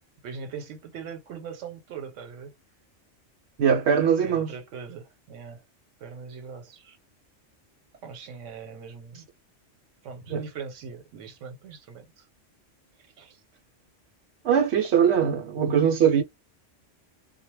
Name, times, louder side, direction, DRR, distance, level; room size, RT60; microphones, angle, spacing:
voice 1, 0.2-2.5 4.2-5.6 6.0-7.0 8.0-9.3 10.0-12.3 13.2-13.4, right 6 dB, 85° right, 1.1 m, -41 dB
voice 2, 3.6-4.5 10.3-10.4 14.4-16.2, right 8 dB, 65° right, 0.9 m, -21 dB
2.2 x 2.0 x 3.1 m
omnidirectional pair, 1.3 m